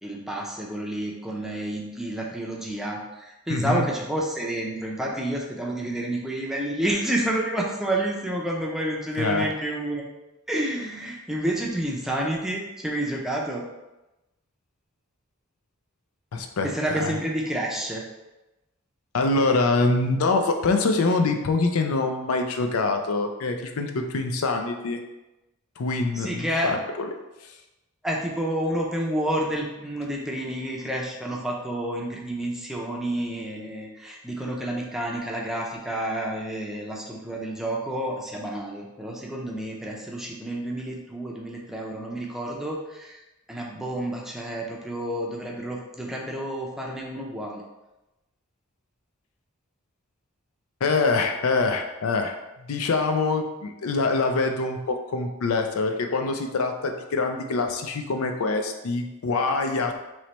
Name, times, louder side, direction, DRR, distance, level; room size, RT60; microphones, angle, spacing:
voice 1, 0.0-10.0 10.5-13.7 16.6-18.0 26.2-26.7 28.0-43.2 43.5-47.6, right 1 dB, ahead, -2 dB, 0.5 m, -29 dB
voice 2, 3.5-3.8 9.2-9.5 16.3-17.2 19.1-25.0 25.8-27.1 27.4-27.5 50.8-60.0, left 3 dB, 80° left, 5 dB, 0.5 m, -25 dB
3.1 x 2.9 x 4.2 m, 1.0 s
head